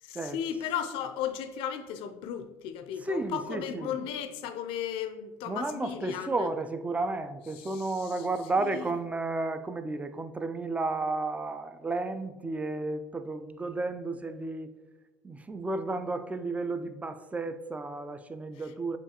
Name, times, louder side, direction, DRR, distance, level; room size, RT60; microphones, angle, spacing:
voice 1, 0.0-6.5 7.5-8.3 8.6-8.9 18.6-18.7, left 9 dB, 60° left, 0.4 m, -35 dB
voice 2, 3.0-4.0 5.4-14.7 15.2-19.0, right 3 dB, 15° right, 0.3 m, -32 dB
7.0 x 2.3 x 2.9 m
hypercardioid pair, 75°, 10 cm